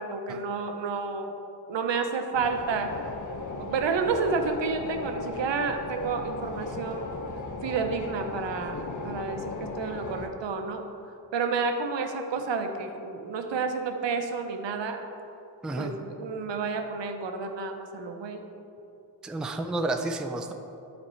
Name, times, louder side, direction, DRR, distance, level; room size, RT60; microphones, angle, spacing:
voice 1, 0.0-1.3 1.7-2.9 3.6-7.1 7.6-10.8 11.3-15.1 15.8-18.4, right 4 dB, 75° right, 6 dB, 0.8 m, -30 dB
sound 1, 2.3-10.3, left 3 dB, 45° left, 0.7 m, -37 dB
voice 2, 15.6-16.0 19.2-20.5, right 2 dB, ahead, 5 dB, 0.3 m, -31 dB
11.0 x 4.3 x 4.4 m, 2.8 s
wide cardioid pair, 105°, 44 cm